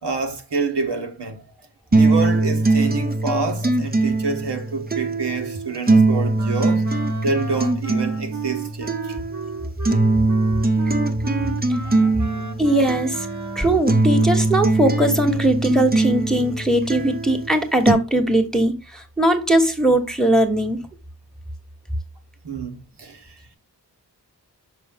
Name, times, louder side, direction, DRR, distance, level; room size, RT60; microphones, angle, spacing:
voice 1, 0.0-1.4 1.9-6.9 7.2-9.2 11.8-12.4 22.4-23.2, right 4 dB, 75° right, 1.2 m, -27 dB
sound 1, 1.9-17.9, right 2 dB, 20° right, 0.7 m, -21 dB
Wind instrument woodwind instrument, 6.4-13.9, right 5 dB, 45° right, 1.0 m, -35 dB
voice 2, 12.6-13.3 13.5-20.8, right 1 dB, ahead, 1.3 m, -20 dB
6.1 x 4.7 x 3.6 m
wide cardioid pair, 60°, 42 cm